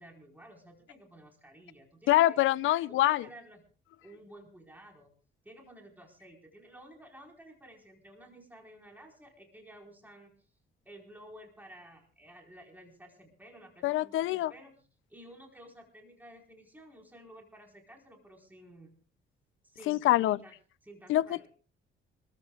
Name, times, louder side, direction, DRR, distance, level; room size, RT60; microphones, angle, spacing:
voice 1, 0.0-2.4 2.9-3.6 4.0-5.1 5.4-10.3 10.8-14.7 15.1-19.0 19.6-20.5 20.8-21.5, right 1 dB, 10° right, 4.6 m, -53 dB
voice 2, 2.1-3.2 13.8-14.5 19.9-20.4 21.1-21.5, left 15 dB, 80° left, 0.5 m, -25 dB
26.5 x 14.5 x 2.4 m
cardioid pair, 90°, 20 cm